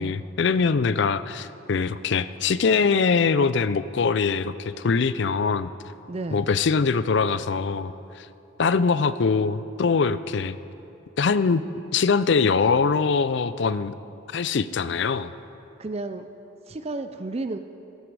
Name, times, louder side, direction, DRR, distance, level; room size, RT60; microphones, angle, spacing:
voice 1, 0.0-5.7 6.3-8.3 8.6-10.5 11.2-11.6 11.9-13.9 14.3-15.3, left 5 dB, 60° left, 15 dB, 0.4 m, -23 dB
voice 2, 6.1-6.4 15.8-16.3 16.7-17.6, right 2 dB, 30° right, 8 dB, 0.4 m, -32 dB
16.5 x 13.5 x 4.8 m, 2.9 s
head